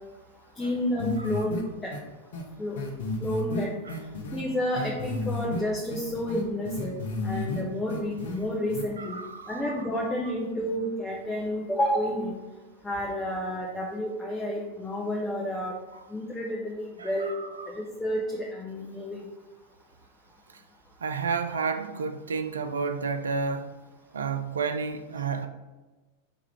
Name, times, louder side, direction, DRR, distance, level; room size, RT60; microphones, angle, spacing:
voice 1, 0.6-1.5 1.8-1.9 2.6-2.8 3.2-3.7 4.3-6.9 7.2-9.2 9.5-12.3 12.8-15.7 16.1-17.3 17.7-19.2, equal, 10° left, -3 dB, 0.5 m, -30 dB
sound 1, 1.0-1.6 1.9-2.0 2.3-2.4 2.8-4.4 4.7-5.6 5.9-7.6 7.9-8.4 8.7-8.8, left 3 dB, 60° left, 0.6 m, -32 dB
voice 2, 9.0-9.9 10.3-10.4 17.0-17.7 21.0-23.7 24.1-25.5, right 5 dB, 70° right, 8 dB, 0.3 m, -31 dB
4.3 x 2.4 x 3.3 m, 1.2 s
figure-of-eight pair, 90°, 0 cm